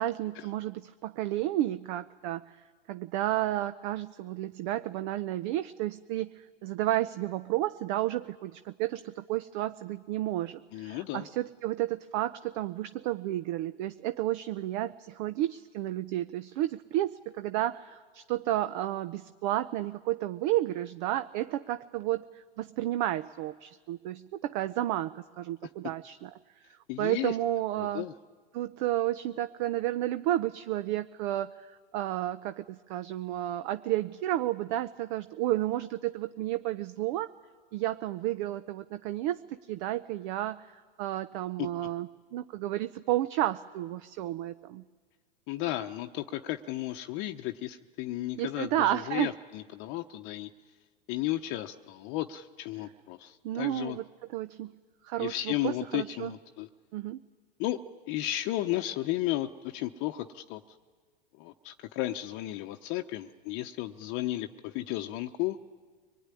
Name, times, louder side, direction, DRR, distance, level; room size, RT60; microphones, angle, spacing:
voice 1, 0.0-2.6 2.9-26.3 27.0-28.1 28.5-37.3 37.7-40.7 41.0-44.8 48.4-49.3 53.4-54.0 54.3-54.7 55.0-56.3 56.9-57.2, right 14 dB, 50° right, 12 dB, 0.7 m, -32 dB
voice 2, 10.7-11.3 26.9-27.3 27.8-28.1 41.6-41.7 45.5-50.5 51.1-54.0 55.2-56.7 57.6-57.8 58.1-60.6 61.4-65.6, left 15 dB, 45° left, 6 dB, 0.9 m, -34 dB
24.5 x 20.5 x 9.9 m, 1.5 s
hypercardioid pair, 115°, 29 cm